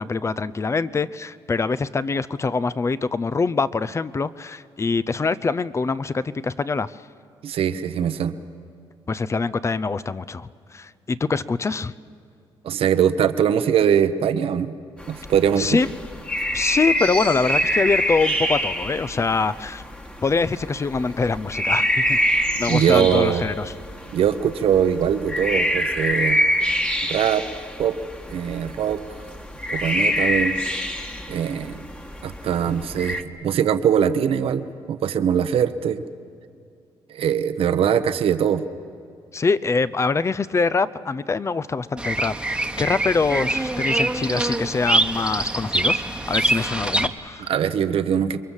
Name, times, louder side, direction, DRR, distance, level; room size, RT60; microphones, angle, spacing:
voice 1, 0.0-7.0 9.1-11.9 15.6-15.9 16.5-19.8 20.2-22.2 22.6-23.7 39.3-47.5, left 4 dB, 30° left, 16 dB, 0.6 m, -24 dB
voice 2, 7.4-8.3 12.6-14.7 15.1-15.8 22.7-23.5 24.1-26.4 27.1-27.4 27.8-27.9 28.3-29.0 29.7-30.6 31.3-31.9 32.2-36.0 37.1-38.6 47.5-48.4, right 8 dB, 70° right, 10 dB, 1.0 m, -21 dB
sound 1, 15.0-33.2, equal, 10° left, 1.5 m, -26 dB
Bird vocalization bird call bird song, 42.0-47.1, right 2 dB, 10° right, 1.2 m, -24 dB
29.0 x 22.5 x 7.3 m, 2.4 s
cardioid pair, 100°, 10 cm